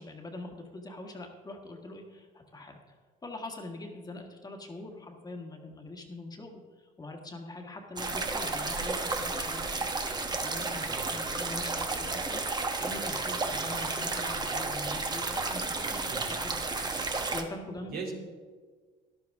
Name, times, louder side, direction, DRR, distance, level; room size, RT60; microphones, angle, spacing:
voice 1, 0.0-2.9 3.2-10.8 11.1-15.6 15.9-18.0, left 2 dB, 25° left, 2 dB, 1.6 m, -43 dB
sound 1, 8.0-17.4, right 3 dB, 25° right, 1.1 m, -32 dB
voice 2, 10.9-11.2 13.2-13.7 16.1-16.4 17.9-18.1, right 4 dB, 65° right, 0 dB, 2.8 m, -41 dB
13.0 x 11.5 x 3.6 m, 1.5 s
cardioid pair, 110°, 17 cm